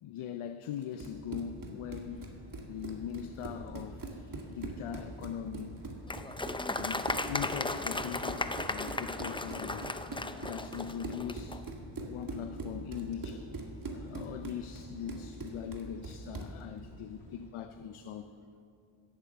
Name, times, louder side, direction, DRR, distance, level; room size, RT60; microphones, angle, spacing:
voice 1, 0.0-2.4 2.6-4.0 4.5-5.8 6.7-9.9 10.4-11.6 12.1-13.5 13.9-18.3, left 8 dB, 75° left, 9 dB, 0.7 m, -41 dB
Run, 0.8-16.6, right 3 dB, 40° right, 2.1 m, -43 dB
sound 1, 1.9-17.5, left 1 dB, 55° left, 3.4 m, -55 dB
Applause, 6.1-11.6, left 2 dB, 10° left, 0.6 m, -36 dB
16.0 x 7.7 x 6.9 m, 2.6 s
cardioid pair, 60°, 50 cm